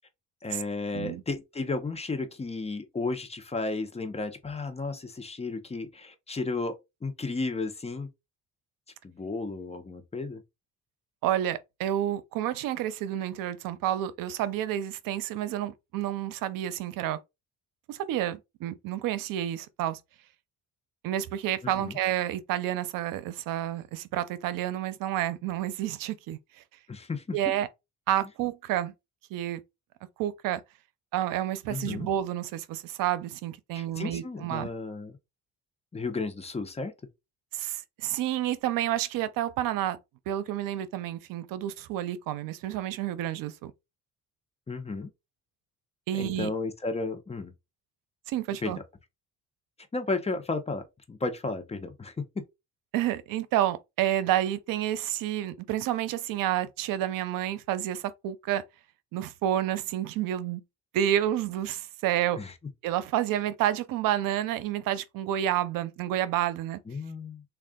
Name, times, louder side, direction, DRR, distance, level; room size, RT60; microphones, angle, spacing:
voice 1, 0.4-6.8 7.0-8.1 9.0-10.4 21.6-22.0 26.9-27.5 31.7-32.1 33.7-35.2 35.9-36.9 44.7-45.1 46.2-47.5 48.6-48.7 49.9-52.2 62.4-62.5 66.9-67.4, left 3 dB, 20° left, 0.7 m, -33 dB
voice 2, 11.2-17.2 17.9-20.0 21.0-26.4 27.3-27.7 28.1-28.9 29.3-29.6 30.2-30.6 31.1-34.7 37.5-40.0 40.3-43.7 46.1-46.5 48.3-48.8 52.9-58.6 59.1-60.6 60.9-62.4 62.8-66.8, right 12 dB, 90° right, 0.6 m, -29 dB
3.6 x 2.4 x 3.6 m
cardioid pair, 115°, 32 cm